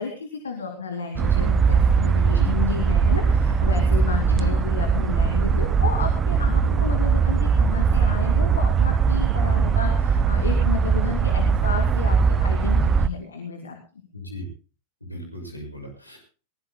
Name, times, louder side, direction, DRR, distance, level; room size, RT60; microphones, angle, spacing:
voice 1, 0.0-13.8, left 5 dB, 70° left, 4 dB, 2.5 m, -32 dB
sound 1, 1.2-13.1, right 6 dB, 20° right, 0.8 m, -20 dB
voice 2, 4.2-4.5 6.6-6.8 14.1-14.5 15.0-16.2, left 1 dB, 85° left, 2 dB, 6.7 m, -35 dB
22.0 x 19.5 x 2.2 m, 0.34 s
figure-of-eight pair, 90°, 0 cm